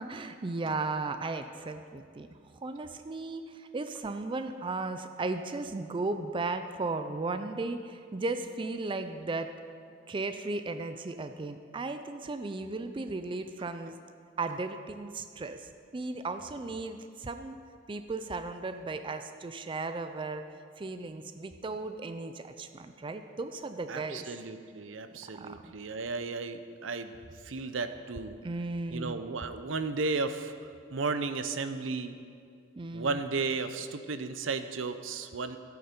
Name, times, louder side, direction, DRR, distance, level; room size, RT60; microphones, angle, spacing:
voice 1, 0.0-2.3 2.6-9.5 10.1-14.0 14.4-17.6 17.9-20.4 20.8-24.4 25.3-25.7 28.4-29.2 32.8-33.2, right 3 dB, 25° right, 8 dB, 0.4 m, -36 dB
voice 2, 23.9-27.2 27.4-28.4 28.9-30.5 30.9-32.2 32.9-35.6, right 4 dB, 80° right, 10 dB, 0.7 m, -34 dB
15.0 x 8.5 x 4.4 m, 2.3 s
head